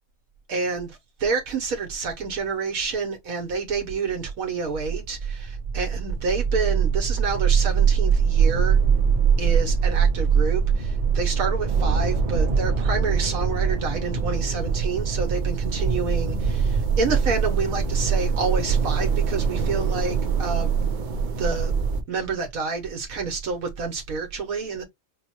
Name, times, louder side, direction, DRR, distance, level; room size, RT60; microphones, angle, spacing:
voice 1, 0.5-8.8 9.4-20.8 21.4-21.7 22.1-24.8, right 4 dB, 70° right, 1.2 m, -28 dB
sound 1, 4.7-22.0, right 6 dB, 50° right, 0.6 m, -23 dB
4.8 x 2.1 x 2.8 m
omnidirectional pair, 1.6 m